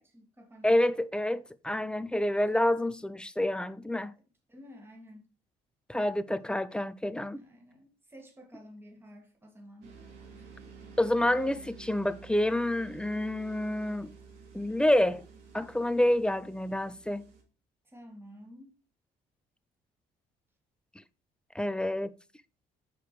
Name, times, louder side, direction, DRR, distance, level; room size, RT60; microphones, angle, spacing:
voice 1, 0.0-0.8 3.9-4.0 4.5-5.3 7.3-10.0 17.8-18.7, equal, 15° right, 1.9 m, -51 dB
voice 2, 0.6-4.1 5.9-7.4 11.0-14.1 14.5-15.2 15.5-17.3 21.6-22.1, left 1 dB, 5° left, 0.3 m, -28 dB
sound 1, 9.8-17.4, right 5 dB, 90° right, 2.2 m, -51 dB
4.9 x 4.9 x 4.7 m
cardioid pair, 110°, 17 cm